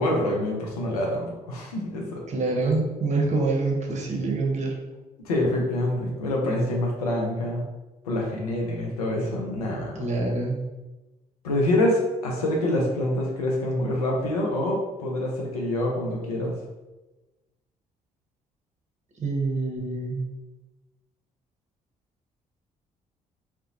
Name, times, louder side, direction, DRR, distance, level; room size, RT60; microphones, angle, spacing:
voice 1, 0.0-2.2 5.2-7.6 8.1-10.1 11.4-16.5, left 1 dB, 85° left, -1 dB, 0.5 m, -26 dB
voice 2, 2.3-4.7 9.9-10.6 19.2-20.3, right 3 dB, 40° right, 0 dB, 0.7 m, -26 dB
2.7 x 2.1 x 2.5 m, 1.1 s
figure-of-eight pair, 45°, 19 cm